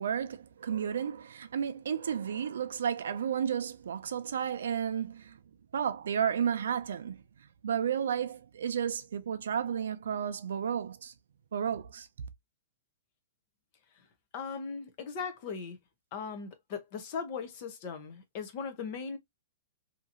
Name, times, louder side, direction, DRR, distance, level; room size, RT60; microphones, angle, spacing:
voice 1, 0.0-5.4 5.7-7.2 7.6-11.1 11.5-12.1, right 8 dB, 80° right, 0.5 m, -32 dB
voice 2, 14.3-15.8 16.1-19.2, left 5 dB, 30° left, 0.6 m, -38 dB
2.8 x 2.6 x 2.5 m
hypercardioid pair, 180°, 0 cm